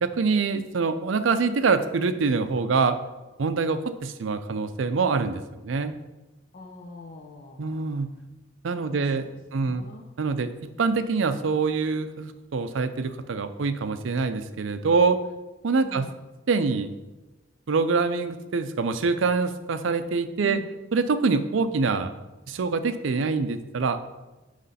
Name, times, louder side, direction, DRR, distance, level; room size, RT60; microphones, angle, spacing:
voice 1, 0.0-3.0 3.4-5.9 7.6-8.1 8.6-9.2 9.5-9.8 10.2-10.5 10.8-15.2 15.6-16.1 16.5-16.9 17.7-20.6 20.9-22.1 22.5-24.0, right 4 dB, 70° right, 10 dB, 0.5 m, -25 dB
voice 2, 6.5-8.2 8.9-10.1 15.8-16.2 20.4-20.7, left 2 dB, 45° left, 1 dB, 0.6 m, -43 dB
9.2 x 3.2 x 4.1 m, 1.1 s
head